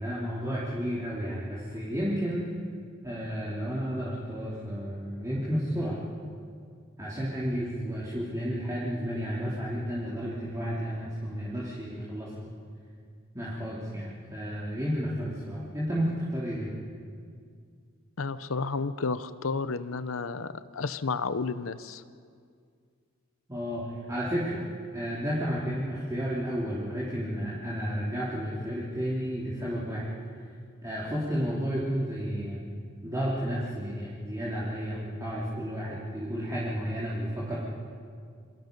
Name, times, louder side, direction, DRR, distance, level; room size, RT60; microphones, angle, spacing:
voice 1, 0.0-2.5 3.0-6.0 7.0-12.3 13.3-16.7 23.5-24.6 24.9-30.1 30.8-32.7 33.0-37.6, equal, 15° right, -7 dB, 3.2 m, -32 dB
voice 2, 18.2-22.0, left 4 dB, 90° left, 13 dB, 0.8 m, -31 dB
28.0 x 23.0 x 5.4 m, 2.2 s
head